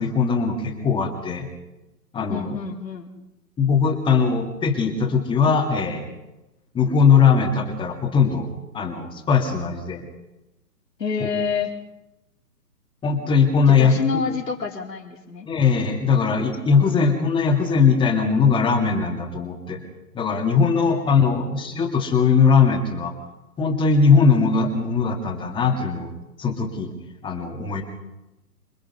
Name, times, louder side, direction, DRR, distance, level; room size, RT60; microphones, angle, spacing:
voice 1, 0.0-1.5 2.1-2.6 3.6-6.1 6.7-8.5 8.7-10.0 11.2-11.3 13.0-14.0 15.5-19.8 20.1-23.1 23.6-26.1 26.4-26.9 27.2-27.8, left 5 dB, 10° left, 3 dB, 2.4 m, -20 dB
voice 2, 2.3-3.1 11.0-11.7 13.7-15.5 21.4-21.6, left 5 dB, 80° left, 0 dB, 4.3 m, -27 dB
27.0 x 20.5 x 5.5 m, 0.97 s
hypercardioid pair, 140°, 48 cm